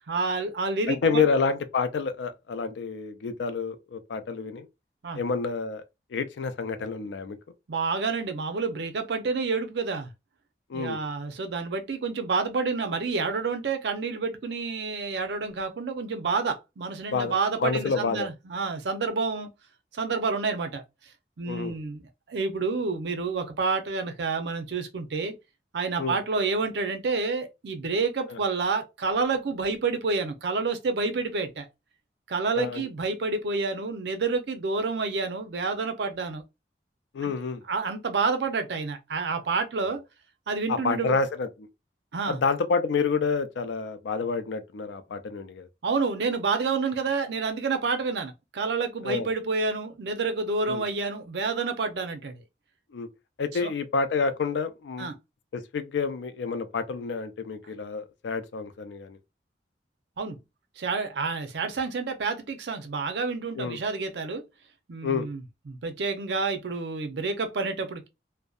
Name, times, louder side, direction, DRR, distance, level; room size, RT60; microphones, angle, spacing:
voice 1, 0.1-1.3 5.0-5.2 7.7-10.1 10.7-19.5 19.9-20.8 21.4-25.3 25.7-31.7 32.3-36.4 37.7-40.0 40.5-41.2 42.1-42.4 45.8-52.3 53.6-53.7 55.0-55.1 60.2-60.4 60.8-64.4 64.9-68.1, right 4 dB, 75° right, 0.5 m, -29 dB
voice 2, 0.9-4.7 5.1-5.8 6.1-7.4 10.7-11.0 17.1-17.3 17.6-18.3 21.5-21.8 26.0-26.2 28.3-28.4 32.5-32.8 37.1-37.6 40.7-41.7 42.3-45.7 49.0-49.3 50.7-50.9 52.9-53.1 53.4-55.1 55.5-59.2 63.6-63.8 65.0-65.3, left 5 dB, 85° left, 0.4 m, -28 dB
2.6 x 2.1 x 2.3 m
head